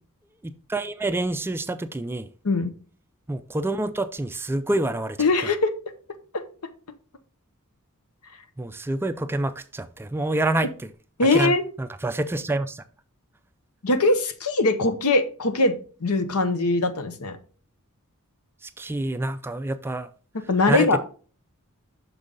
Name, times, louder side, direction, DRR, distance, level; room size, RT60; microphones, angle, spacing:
voice 1, 0.4-2.3 3.3-5.2 8.6-10.9 11.3-11.5 11.8-12.8 18.6-20.1 20.7-21.0, right 2 dB, 10° right, 0.3 m, -27 dB
voice 2, 5.2-5.7 11.2-11.6 13.8-15.7 16.0-17.4 20.3-21.0, left 2 dB, 75° left, 0.9 m, -21 dB
6.2 x 5.1 x 3.9 m
head